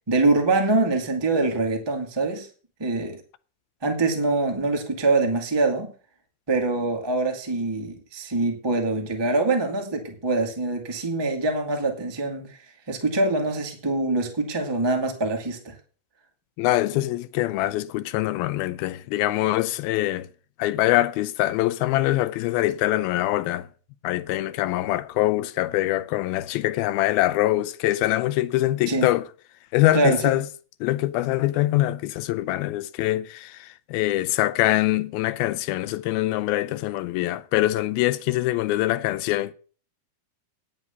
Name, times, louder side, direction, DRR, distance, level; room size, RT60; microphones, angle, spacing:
voice 1, 0.1-2.5 2.8-3.2 3.8-5.9 6.5-12.6 12.9-15.8 28.9-29.1 29.9-30.3, right 3 dB, 25° right, 0.5 m, -24 dB
voice 2, 16.6-20.3 20.6-23.7 24.0-29.2 29.7-30.5 30.8-39.5, left 16 dB, 90° left, 2.6 m, -24 dB
9.7 x 7.8 x 7.0 m
omnidirectional pair, 4.2 m